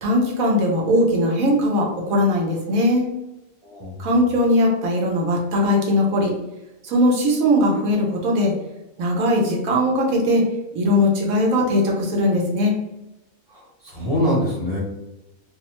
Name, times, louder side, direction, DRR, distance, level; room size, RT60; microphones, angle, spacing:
voice 1, 0.0-3.1 4.0-6.3 6.8-8.5 9.0-12.7, left 1 dB, 80° right, 0 dB, 1.2 m, -19 dB
voice 2, 3.6-4.1 13.5-14.8, equal, 25° left, -7 dB, 0.6 m, -24 dB
2.8 x 2.1 x 2.9 m, 0.93 s
omnidirectional pair, 1.4 m